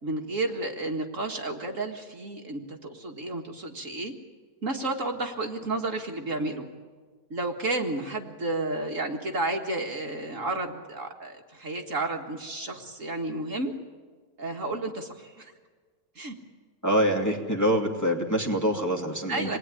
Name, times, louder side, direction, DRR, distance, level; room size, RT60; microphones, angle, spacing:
voice 1, 0.0-4.1 4.6-6.7 7.3-13.7 14.4-15.5 16.2-16.4 19.3-19.6, right 2 dB, 50° right, 3 dB, 2.1 m, -31 dB
voice 2, 16.8-19.6, equal, 10° left, 0 dB, 2.5 m, -25 dB
27.5 x 20.5 x 9.9 m, 1.5 s
omnidirectional pair, 1.7 m